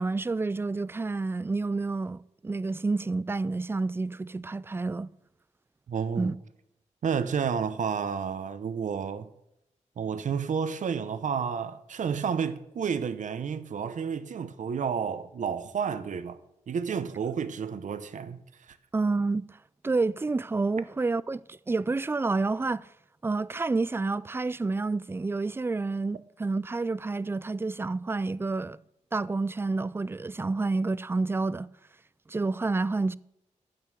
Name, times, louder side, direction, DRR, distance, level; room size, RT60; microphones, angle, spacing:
voice 1, 0.0-5.1 6.2-6.3 18.9-19.4 19.8-22.9 23.2-28.8 29.1-31.7 32.3-33.1, right 3 dB, 20° right, 0.4 m, -29 dB
voice 2, 5.9-6.3 7.0-9.3 10.0-16.4 16.7-18.4 18.7-18.8, right 6 dB, 80° right, 0.9 m, -31 dB
12.5 x 8.7 x 6.3 m
wide cardioid pair, 110°, 13 cm